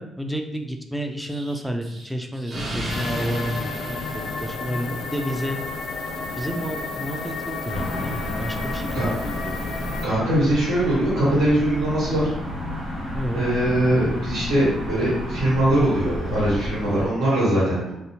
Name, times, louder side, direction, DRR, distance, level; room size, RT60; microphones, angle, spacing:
voice 1, 0.0-5.6 6.4-9.6 13.1-13.4, equal, ahead, 4 dB, 0.3 m, -30 dB
Explosion, 1.3-5.1, right 1 dB, 35° right, 0.7 m, -34 dB
sound 1, 2.9-10.1, left 3 dB, 85° left, 0.4 m, -32 dB
sound 2, 7.7-17.1, equal, 55° right, 1.3 m, -31 dB
voice 2, 10.0-12.3 13.3-17.9, right 1 dB, 75° right, -8 dB, 1.4 m, -21 dB
2.7 x 2.0 x 2.8 m, 0.90 s
cardioid pair, 90°, 0 cm